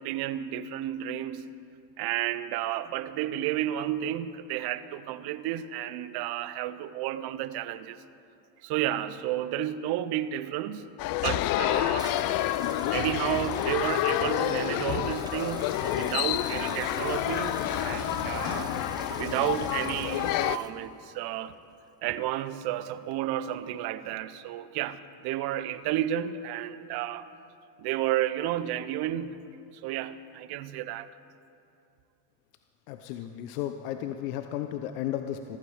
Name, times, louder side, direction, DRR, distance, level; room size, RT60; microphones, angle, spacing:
voice 1, 0.0-1.5 2.0-8.0 8.6-10.9 11.2-12.1 12.9-18.7 19.2-21.5 22.0-27.3 27.8-29.4 29.8-31.1, right 12 dB, 50° right, 0.9 m, -32 dB
sound 1, 11.0-20.6, left 14 dB, 45° left, 0.5 m, -29 dB
sound 2, 11.2-11.3 12.0-20.7, right 3 dB, 10° right, 0.5 m, -43 dB
sound 3, 15.8-20.5, right 4 dB, 90° right, 2.7 m, -47 dB
voice 2, 32.9-35.6, left 11 dB, 70° left, 0.9 m, -34 dB
15.0 x 14.5 x 4.9 m
hypercardioid pair, 90°, 48 cm